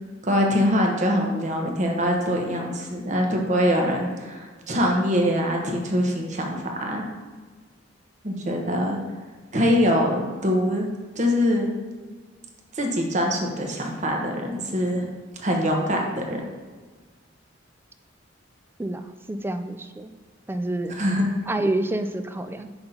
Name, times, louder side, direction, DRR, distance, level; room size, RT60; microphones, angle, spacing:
voice 1, 0.2-7.0 8.2-9.0 9.5-10.9 11.1-11.7 12.7-15.1 15.4-16.4 21.0-21.2, equal, 40° right, 1 dB, 1.0 m, -23 dB
voice 2, 19.3-20.1 20.5-20.9 21.5-22.7, right 1 dB, 10° right, 9 dB, 0.3 m, -28 dB
5.7 x 3.9 x 5.7 m, 1.4 s
head